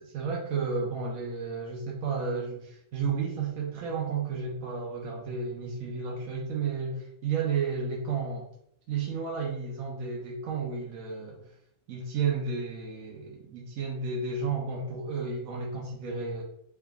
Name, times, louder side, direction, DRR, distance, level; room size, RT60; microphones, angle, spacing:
voice 1, 0.0-8.4 8.9-11.4 11.9-16.4, right 5 dB, 85° right, -2 dB, 1.1 m, -32 dB
3.4 x 3.3 x 2.3 m, 0.71 s
omnidirectional pair, 1.4 m